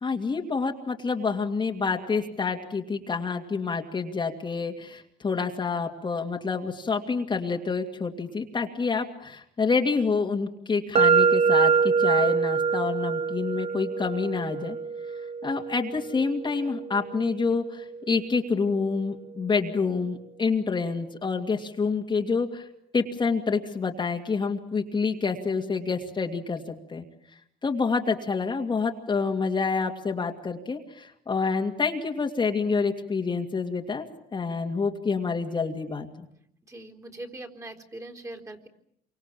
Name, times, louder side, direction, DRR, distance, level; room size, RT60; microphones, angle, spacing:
voice 1, 0.0-14.8 15.4-22.7 22.9-27.0 27.6-34.1 34.3-36.3, left 4 dB, 25° left, 2 dB, 2.4 m, -28 dB
sound 1, 10.9-18.8, right 5 dB, 35° right, 1.0 m, -25 dB
voice 2, 36.7-38.7, right 2 dB, 20° right, 1 dB, 4.0 m, -41 dB
28.0 x 25.0 x 7.6 m, 0.73 s
cardioid pair, 110°, 17 cm